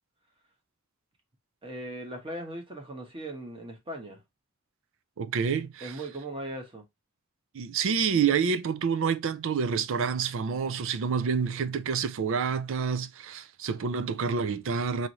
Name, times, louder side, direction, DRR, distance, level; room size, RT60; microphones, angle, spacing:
voice 1, 1.6-4.2 5.8-6.8, right 1 dB, 25° right, 1.2 m, -38 dB
voice 2, 5.2-6.0 7.5-15.1, right 6 dB, 65° right, 0.4 m, -28 dB
4.9 x 2.7 x 3.0 m
head